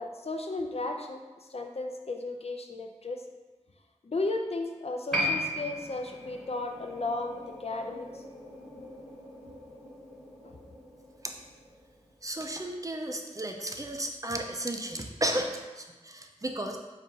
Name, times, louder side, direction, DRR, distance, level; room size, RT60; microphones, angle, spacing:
voice 1, 0.0-3.2 4.0-8.2 10.4-10.6, left 2 dB, 55° left, 3 dB, 0.4 m, -35 dB
sound 1, 4.7-12.3, left 1 dB, 80° left, 1.1 m, -50 dB
Piano, 5.1-12.1 12.3-12.4, left 1 dB, ahead, 1.1 m, -37 dB
voice 2, 12.2-16.8, right 1 dB, 30° right, 3 dB, 0.4 m, -33 dB
4.0 x 2.5 x 3.9 m, 1.2 s
wide cardioid pair, 45°, 12 cm